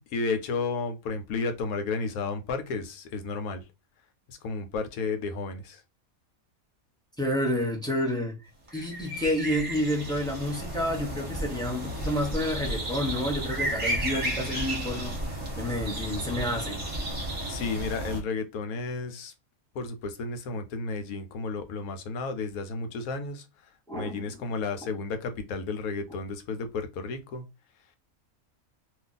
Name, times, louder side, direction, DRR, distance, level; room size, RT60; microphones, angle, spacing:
voice 1, 0.1-3.6 4.3-5.8 17.5-19.3 19.7-23.5 23.9-27.4, left 4 dB, 85° left, 1.1 m, -32 dB
voice 2, 7.2-15.2 15.6-16.8 23.9-24.4, left 1 dB, 5° left, 0.5 m, -30 dB
sound 1, 8.7-18.2, right 1 dB, 25° right, 0.8 m, -33 dB
2.6 x 2.3 x 3.8 m
omnidirectional pair, 1.5 m